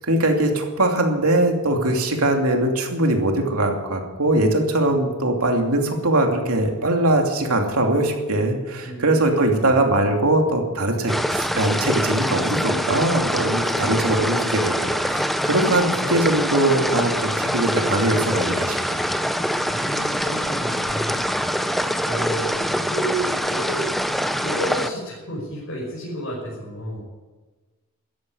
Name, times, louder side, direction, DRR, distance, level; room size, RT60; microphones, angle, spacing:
voice 1, 0.1-19.1, right 1 dB, 85° right, 2 dB, 2.8 m, -21 dB
voice 2, 8.8-9.7 13.7-14.1 19.5-21.4 22.0-23.9 24.4-27.0, right 1 dB, 65° left, -5 dB, 5.6 m, -31 dB
sound 1, 11.1-24.9, equal, ahead, 0.6 m, -24 dB
13.5 x 10.5 x 9.8 m, 1.3 s
head